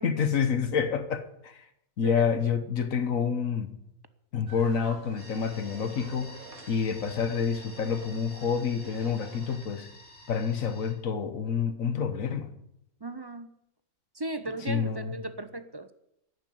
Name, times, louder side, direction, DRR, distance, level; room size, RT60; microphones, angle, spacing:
voice 1, 0.0-1.6 2.0-3.7 4.3-6.4 6.7-9.9 10.3-12.5 14.7-15.1, left 6 dB, 65° left, 1.5 m, -28 dB
sound 1, 4.5-9.6, right 3 dB, 75° right, 2.3 m, -50 dB
sound 2, 5.2-10.9, left 1 dB, 5° left, 6.3 m, -50 dB
voice 2, 13.0-13.5 14.1-15.9, right 2 dB, 35° right, 0.4 m, -36 dB
11.0 x 9.7 x 9.4 m
omnidirectional pair, 1.5 m